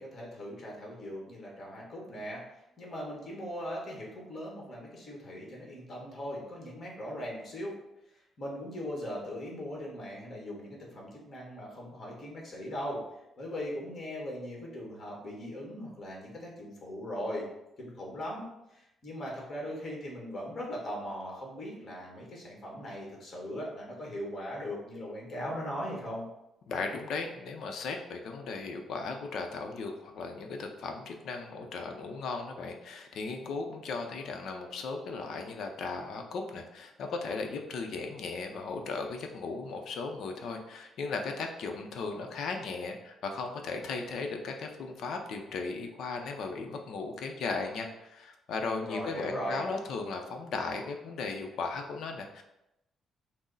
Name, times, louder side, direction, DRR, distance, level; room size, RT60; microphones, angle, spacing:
voice 1, 0.0-2.4 2.8-7.7 8.4-13.0 13.4-17.5 17.8-26.3 48.8-49.6, equal, 35° left, -2 dB, 1.3 m, -39 dB
voice 2, 26.7-52.4, left 4 dB, 65° left, 4 dB, 0.6 m, -36 dB
6.1 x 2.0 x 3.9 m, 0.89 s
cardioid pair, 160°, 0 cm